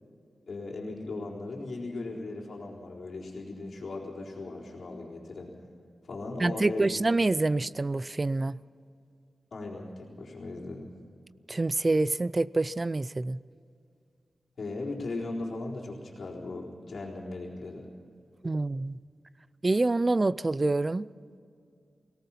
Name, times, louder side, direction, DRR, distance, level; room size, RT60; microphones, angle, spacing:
voice 1, 0.5-5.5 6.0-7.0 9.5-10.9 14.6-17.9, left 2 dB, 65° left, 4.1 m, -38 dB
voice 2, 6.4-8.6 11.5-13.4 18.4-19.0 19.6-21.1, right 2 dB, 30° right, 0.4 m, -26 dB
25.0 x 18.0 x 5.8 m
wide cardioid pair, 115°, 0 cm